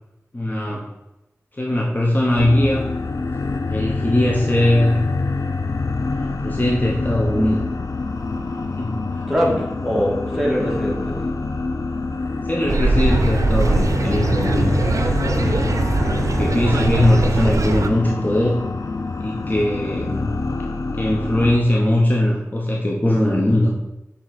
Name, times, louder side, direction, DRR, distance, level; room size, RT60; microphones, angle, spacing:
voice 1, 0.3-0.9 1.6-2.9 3.7-5.1 6.1-7.7 8.8-9.3 9.9-10.0 10.3-10.7 12.4-14.9 15.4-15.6 16.0-18.6 19.2-20.3 20.9-23.7, left 1 dB, 30° left, -2 dB, 0.9 m, -20 dB
sound 1, 2.4-21.6, left 3 dB, 85° left, 0.4 m, -26 dB
voice 2, 9.3-11.2 15.2-15.7, equal, 5° right, -4 dB, 1.9 m, -23 dB
sound 2, 12.7-17.9, right 2 dB, 75° right, 0.5 m, -21 dB
6.2 x 3.8 x 4.1 m, 0.93 s
wide cardioid pair, 60°, 6 cm